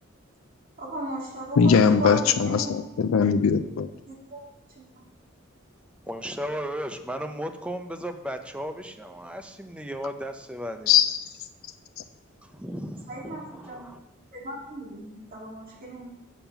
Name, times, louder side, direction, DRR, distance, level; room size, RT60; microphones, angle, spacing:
voice 1, 0.8-2.7 4.1-4.4 13.1-13.9 14.3-16.1, right 1 dB, 45° right, -3 dB, 2.1 m, -36 dB
voice 2, 1.6-3.9 10.9-11.1, left 6 dB, 85° left, 8 dB, 0.4 m, -20 dB
voice 3, 6.1-11.0 12.4-14.0, equal, 5° right, 7 dB, 0.5 m, -35 dB
7.4 x 5.3 x 5.9 m, 0.92 s
head